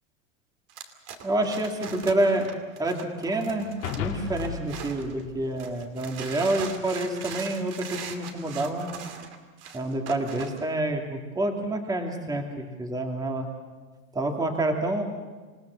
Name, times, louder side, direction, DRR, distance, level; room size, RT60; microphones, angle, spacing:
sound 1, 0.7-5.2 5.6-10.6, right 7 dB, 40° right, 2.7 m, -40 dB
voice 1, 1.2-2.5 2.8-3.7 3.9-8.9 9.7-13.5 14.1-15.0, right 1 dB, 10° right, 2 dB, 2.5 m, -28 dB
sound 2, 3.8-6.3, left 7 dB, 55° left, 2.7 m, -36 dB
27.5 x 17.0 x 7.1 m, 1.3 s
supercardioid pair, 135°, 40 cm